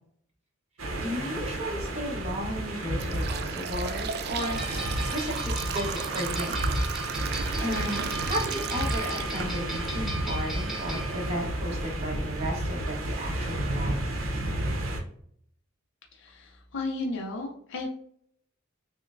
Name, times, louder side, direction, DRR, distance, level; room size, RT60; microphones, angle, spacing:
sound 1, 0.8-15.0, right 1 dB, 70° right, 0.7 m, -32 dB
voice 1, 1.0-4.8 5.1-6.7 7.6-14.0, equal, 30° right, -2 dB, 1.1 m, -34 dB
sound 2, 3.0-9.9 10.3-10.4 11.3-11.4 11.9-12.0 12.4-12.6, right 8 dB, 50° right, 0.3 m, -36 dB
sound 3, 4.4-11.5, right 1 dB, ahead, 0.9 m, -38 dB
voice 2, 16.1-17.9, left 2 dB, 65° left, 0 dB, 0.6 m, -34 dB
5.9 x 2.1 x 2.5 m, 0.65 s
head